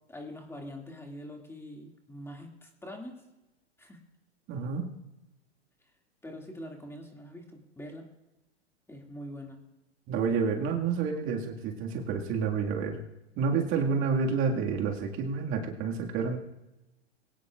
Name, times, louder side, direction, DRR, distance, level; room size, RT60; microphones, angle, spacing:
voice 1, 0.1-3.2 3.8-4.0 6.2-8.1 8.9-9.6, left 1 dB, 5° left, 2 dB, 2.3 m, -44 dB
voice 2, 4.5-4.8 10.1-13.0 13.4-16.4, right 5 dB, 40° right, 1 dB, 2.0 m, -29 dB
22.5 x 17.5 x 2.5 m, 0.98 s
hypercardioid pair, 100°, 33 cm